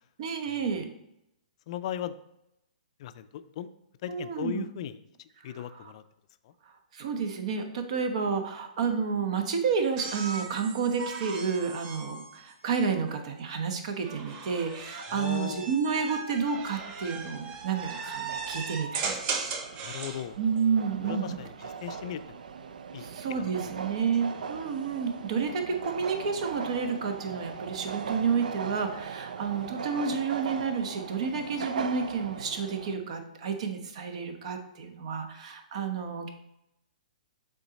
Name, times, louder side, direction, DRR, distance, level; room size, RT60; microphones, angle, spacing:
voice 1, 0.2-0.9 4.1-4.6 5.5-5.9 6.9-19.4 20.4-21.4 23.0-36.3, right 6 dB, 55° right, 6 dB, 1.0 m, -30 dB
voice 2, 1.7-2.2 3.0-3.7 4.0-5.0 5.4-6.0 6.4-6.5 15.1-15.7 19.8-20.4 21.0-22.4 22.9-23.1 23.4-23.5 24.4-24.5, left 10 dB, 45° left, 12 dB, 0.4 m, -37 dB
sound 1, 10.0-13.2 14.0-20.2 21.7-22.2, right 5 dB, 30° right, 0.7 m, -38 dB
sound 2, 16.4-33.0, right 6 dB, 80° right, 0.4 m, -40 dB
7.1 x 3.9 x 4.0 m, 0.84 s
hypercardioid pair, 145°, 4 cm